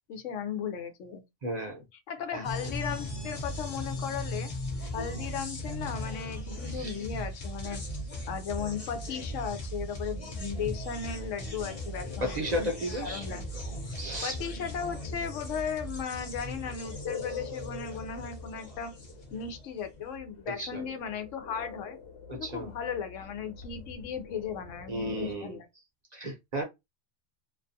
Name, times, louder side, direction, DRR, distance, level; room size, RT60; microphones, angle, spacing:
voice 1, 0.1-1.2 2.1-4.5 4.9-7.8 8.3-12.7 13.0-13.4 14.2-18.9 19.3-22.0 22.3-25.7, left 7 dB, 90° left, 1.0 m, -36 dB
voice 2, 1.4-1.8 2.3-2.4 6.7-7.0 12.2-13.3 13.9-14.4 20.5-20.8 22.3-22.7 24.9-25.6 26.1-26.6, equal, 45° right, 0.6 m, -34 dB
sound 1, 2.4-19.9, equal, 35° left, 0.7 m, -38 dB
sound 2, 10.0-25.4, left 5 dB, 65° left, 1.0 m, -46 dB
2.5 x 2.3 x 2.6 m
omnidirectional pair, 1.2 m